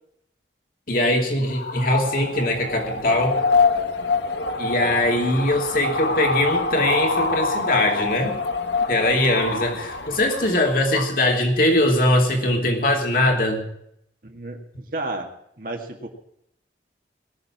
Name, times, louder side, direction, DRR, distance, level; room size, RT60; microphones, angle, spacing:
voice 1, 0.9-3.4 4.6-8.3 8.9-13.7, left 1 dB, 50° left, 2 dB, 2.6 m, -21 dB
sound 1, 1.4-11.2, left 3 dB, 75° left, 1.4 m, -25 dB
voice 2, 14.2-15.3 15.6-16.1, right 2 dB, 50° right, 2 dB, 2.1 m, -32 dB
20.5 x 6.9 x 7.4 m, 0.75 s
head